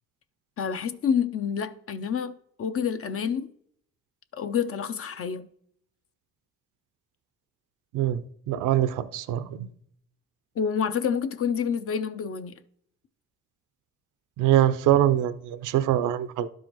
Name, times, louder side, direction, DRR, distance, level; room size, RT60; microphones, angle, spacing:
voice 1, 0.6-3.5 4.3-5.5 10.6-12.5, left 7 dB, 50° left, 0.6 m, -28 dB
voice 2, 8.5-9.7 14.4-16.5, right 12 dB, 85° right, 0.6 m, -23 dB
11.5 x 4.8 x 3.0 m
cardioid pair, 90°, 30 cm